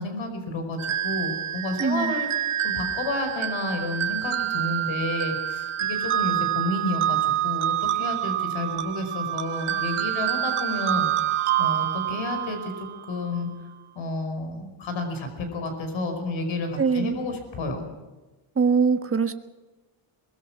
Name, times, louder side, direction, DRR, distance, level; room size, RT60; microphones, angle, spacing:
voice 1, 0.0-11.1 11.6-13.5 13.9-17.9, left 2 dB, 65° left, 6 dB, 5.0 m, -31 dB
sound 1, 0.8-13.2, right 11 dB, 75° right, 1.4 m, -27 dB
voice 2, 1.8-2.1 16.8-17.2 18.6-19.3, right 5 dB, 25° right, 8 dB, 1.4 m, -22 dB
23.0 x 22.0 x 6.0 m, 1.2 s
cardioid pair, 135°, 49 cm